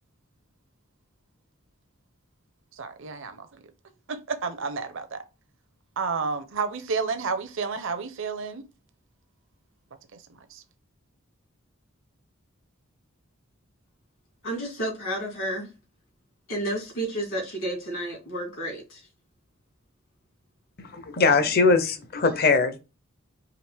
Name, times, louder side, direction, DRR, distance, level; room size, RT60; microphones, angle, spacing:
voice 1, 2.8-3.6 4.1-5.2 6.0-8.6 10.1-10.6, right 5 dB, 65° right, 0.6 m, -31 dB
voice 2, 14.4-15.7 16.5-19.1, right 1 dB, 70° left, 2.6 m, -31 dB
voice 3, 20.8-22.8, left 4 dB, 50° left, 0.7 m, -21 dB
4.9 x 2.8 x 3.3 m
head